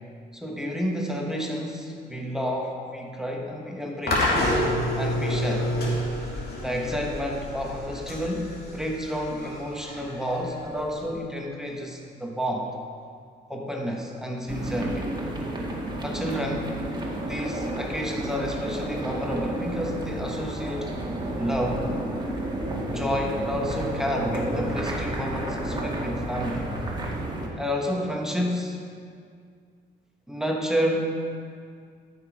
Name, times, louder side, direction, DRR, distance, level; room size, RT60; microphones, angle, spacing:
voice 1, 0.3-4.3 4.9-5.7 6.6-12.7 13.5-15.1 16.0-16.7 17.3-20.9 21.4-21.9 22.9-26.7 27.6-28.8 30.3-31.1, equal, ahead, 0 dB, 1.3 m, -30 dB
sound 1, 4.1-11.1, left 1 dB, 55° left, 2.4 m, -28 dB
sound 2, 14.5-27.5, right 1 dB, 20° right, 1.9 m, -31 dB
12.5 x 6.2 x 4.9 m, 2.2 s
cardioid pair, 90°, 20 cm